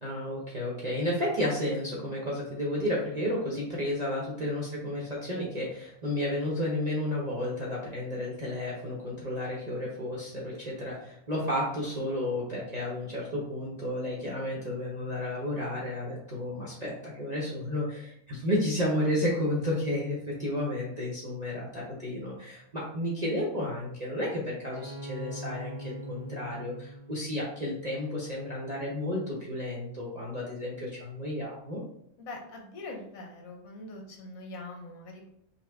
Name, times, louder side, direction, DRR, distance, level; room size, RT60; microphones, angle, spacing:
voice 1, 0.0-31.8, left 1 dB, 35° right, -5 dB, 0.8 m, -32 dB
Bowed string instrument, 24.7-28.3, right 1 dB, 80° right, 1.2 m, -43 dB
voice 2, 32.2-35.3, left 2 dB, 85° left, 1 dB, 1.3 m, -43 dB
5.4 x 2.3 x 3.4 m, 0.73 s
omnidirectional pair, 1.5 m